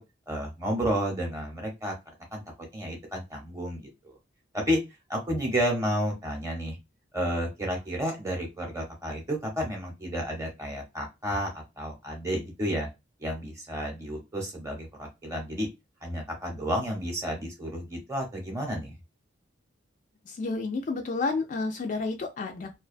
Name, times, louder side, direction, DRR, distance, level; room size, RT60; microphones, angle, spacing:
voice 1, 0.3-1.9 2.3-2.4 2.7-4.1 4.7-4.8 5.1-6.8 7.1-12.9 13.2-15.7 16.0-18.9, equal, 15° right, 1 dB, 0.7 m, -31 dB
voice 2, 20.3-22.8, left 3 dB, 40° left, 4 dB, 0.3 m, -30 dB
2.4 x 2.2 x 2.4 m, 0.23 s
head